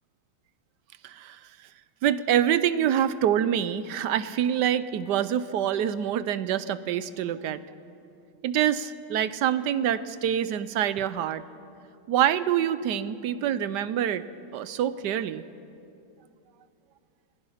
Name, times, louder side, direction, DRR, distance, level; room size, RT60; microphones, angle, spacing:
voice 1, 1.0-1.4 2.0-7.6 8.4-11.4 12.1-14.2 14.5-15.4, right 10 dB, 70° right, 14 dB, 1.1 m, -26 dB
25.0 x 19.5 x 5.7 m, 2.6 s
omnidirectional pair, 2.2 m